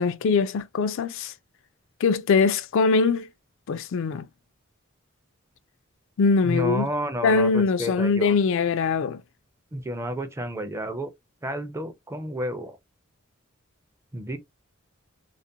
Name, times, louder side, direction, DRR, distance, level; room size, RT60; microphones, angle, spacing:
voice 1, 0.0-1.3 2.0-3.3 3.7-4.2 6.2-6.9 7.2-9.2, left 4 dB, 65° left, 0.3 m, -22 dB
voice 2, 6.4-8.4 9.7-11.1 11.4-12.8 14.1-14.4, equal, 15° right, 0.4 m, -31 dB
2.4 x 2.1 x 2.7 m
head